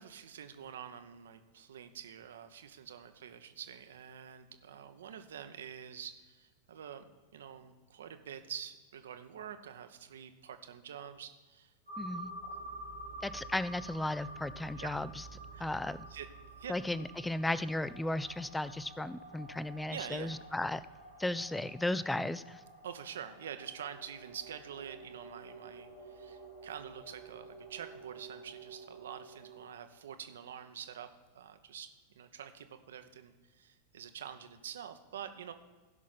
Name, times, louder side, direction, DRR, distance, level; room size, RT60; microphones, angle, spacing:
voice 1, 0.0-11.7 12.4-12.8 14.8-14.9 15.5-15.6 16.1-16.3 16.6-16.7 19.9-20.4 22.8-35.5, right 8 dB, 60° right, 9 dB, 0.8 m, -47 dB
sound 1, 11.9-29.7, right 2 dB, 85° left, 2.8 m, -49 dB
voice 2, 12.0-12.3 13.2-15.1 15.6-16.0 16.7-20.8 21.2-22.6, left 1 dB, 5° left, 17 dB, 0.3 m, -35 dB
16.0 x 6.1 x 4.1 m, 1.3 s
figure-of-eight pair, 90°, 0 cm